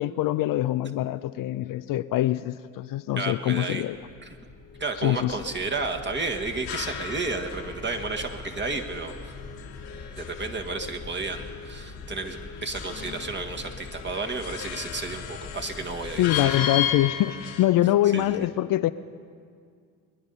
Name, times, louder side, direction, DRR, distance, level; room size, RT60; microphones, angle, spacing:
voice 1, 0.0-4.0 5.0-5.4 16.2-18.9, left 14 dB, 55° left, 0.5 m, -24 dB
voice 2, 3.2-3.8 4.2-4.3 4.8-9.1 10.2-16.6 18.1-18.5, right 3 dB, 25° right, 1.6 m, -32 dB
sound 1, 3.8-16.4, left 4 dB, 30° left, 1.4 m, -43 dB
sound 2, 6.3-17.7, left 9 dB, 80° left, 1.7 m, -36 dB
22.5 x 10.5 x 5.5 m
hypercardioid pair, 65°, 41 cm